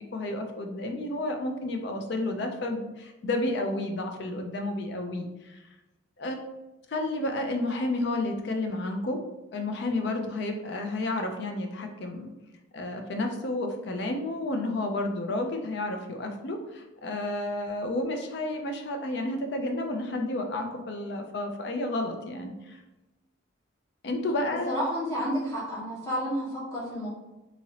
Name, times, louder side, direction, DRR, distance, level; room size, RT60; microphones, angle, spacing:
voice 1, 0.0-5.6 6.2-6.4 6.9-9.2 9.5-12.3 12.7-22.8 24.0-24.8, left 2 dB, 55° left, 4 dB, 0.4 m, -31 dB
voice 2, 24.7-27.1, equal, 15° left, -9 dB, 1.2 m, -30 dB
2.8 x 2.7 x 2.8 m, 1.0 s
head